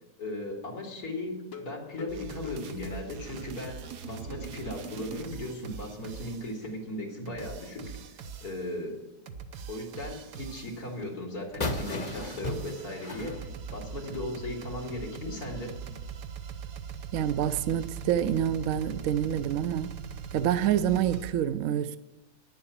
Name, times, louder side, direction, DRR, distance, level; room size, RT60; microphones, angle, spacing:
voice 1, 0.2-7.9 8.4-9.0 9.7-15.7, left 1 dB, 80° left, 2.7 m, -37 dB
sound 1, 1.4-4.0 4.3-4.4 4.8-4.9 5.2-5.3, left 6 dB, 60° left, 1.4 m, -46 dB
sound 2, 2.1-6.6 7.3-8.7 9.3-10.9 11.4-21.3, right 7 dB, 85° right, 1.4 m, -42 dB
sound 3, 11.6-14.3, left 2 dB, 30° left, 0.9 m, -35 dB
voice 2, 17.1-20.0 20.3-22.0, right 10 dB, 70° right, 0.9 m, -27 dB
10.0 x 7.8 x 7.2 m
omnidirectional pair, 1.7 m